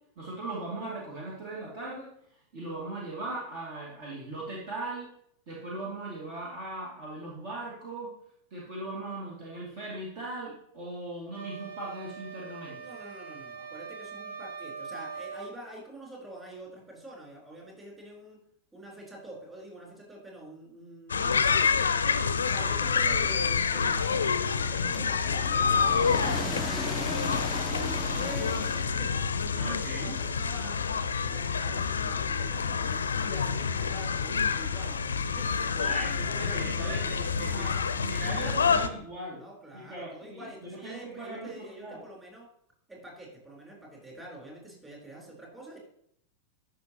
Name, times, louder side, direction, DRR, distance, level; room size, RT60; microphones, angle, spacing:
voice 1, 0.2-2.1 2.5-5.1 5.5-8.1 8.5-12.8 29.5-30.2 35.8-39.4 39.7-42.0, right 2 dB, 45° right, -4 dB, 2.4 m, -38 dB
sound 1, 11.3-15.6, right 5 dB, 65° right, 1.0 m, -42 dB
voice 2, 12.8-18.4 18.7-21.8 22.4-33.0 33.2-35.6 36.0-36.6 37.3-38.0 39.4-42.5 42.9-45.8, right 1 dB, 15° right, -2 dB, 4.1 m, -46 dB
sound 2, 21.1-38.9, left 6 dB, 70° left, 0.6 m, -28 dB
sound 3, 24.9-29.3, left 1 dB, 5° left, 0.5 m, -38 dB
13.0 x 6.0 x 3.0 m, 0.69 s
figure-of-eight pair, 90°, 0 cm